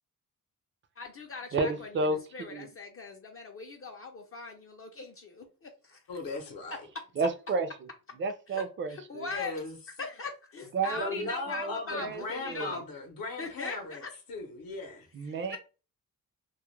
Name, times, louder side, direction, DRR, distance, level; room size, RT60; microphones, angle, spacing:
voice 1, 1.0-2.1 2.3-6.0 8.5-8.6 8.9-9.6 10.0-12.8 13.4-14.1 15.2-15.6, left 4 dB, 40° left, 0.4 m, -40 dB
voice 2, 1.5-2.2 2.5-2.7 7.2-7.7 8.2-9.3 10.7-12.8 15.1-15.6, right 3 dB, 35° right, 0.4 m, -32 dB
voice 3, 6.1-6.8 9.3-9.8 10.9-14.0 14.3-15.1, left 2 dB, 75° left, 0.7 m, -38 dB
2.3 x 2.0 x 3.0 m
wide cardioid pair, 115°, 35 cm